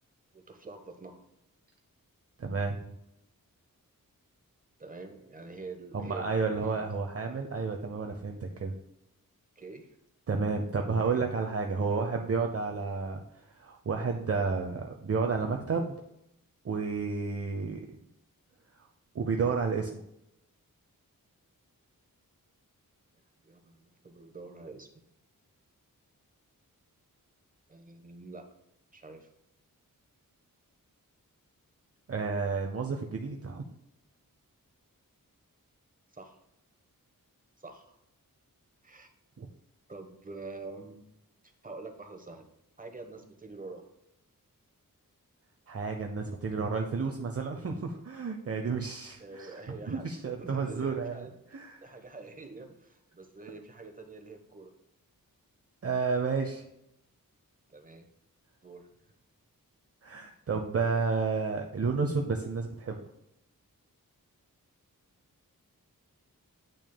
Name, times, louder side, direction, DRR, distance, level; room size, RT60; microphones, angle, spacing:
voice 1, 0.3-1.2 4.8-6.9 9.6-9.9 11.0-11.2 11.7-12.0 18.5-18.6 23.4-25.0 27.7-28.5 28.9-29.3 36.1-36.4 37.6-37.9 38.8-39.1 39.9-41.0 41.6-42.5 42.8-43.9 49.2-54.7 57.7-58.1 58.6-58.9, right 3 dB, 25° right, 5 dB, 1.1 m, -46 dB
voice 2, 2.4-2.8 5.9-8.7 10.3-13.2 13.5-16.0 16.6-17.8 19.1-20.0 32.1-33.6 39.4-39.5 45.7-49.5 49.9-51.8 55.8-56.6 60.0-63.0, right 4 dB, 45° right, 3 dB, 0.6 m, -31 dB
8.7 x 6.1 x 2.2 m, 0.82 s
wide cardioid pair, 85°, 35 cm